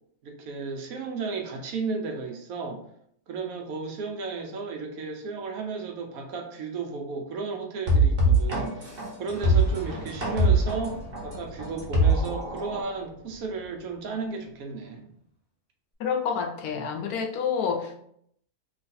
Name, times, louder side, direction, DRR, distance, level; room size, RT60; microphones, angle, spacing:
voice 1, 0.2-2.8 3.3-15.1, right 4 dB, 70° right, 4 dB, 1.0 m, -34 dB
sound 1, 7.9-12.8, right 2 dB, 40° right, 1.1 m, -22 dB
Fire / Explosion, 8.8-14.7, equal, 10° right, 1.0 m, -44 dB
voice 2, 16.0-18.0, left 6 dB, 75° left, 4 dB, 1.0 m, -28 dB
3.1 x 2.4 x 4.1 m, 0.68 s
omnidirectional pair, 1.6 m